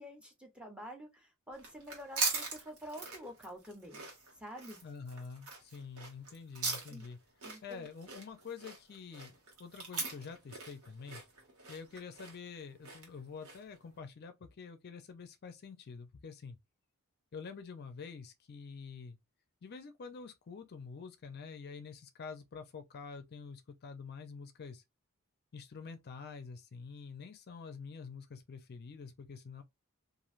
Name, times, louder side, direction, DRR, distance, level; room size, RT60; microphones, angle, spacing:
voice 1, 0.0-4.0 4.4-4.8 6.9-7.0 7.4-7.9, equal, 5° right, 0.7 m, -48 dB
sound 1, 1.5-13.8, right 4 dB, 85° right, 1.2 m, -41 dB
voice 2, 4.8-7.2 7.6-11.2 11.7-16.6 17.3-19.2 19.6-24.8 25.5-29.6, left 5 dB, 50° left, 0.4 m, -47 dB
3.1 x 2.5 x 2.4 m
head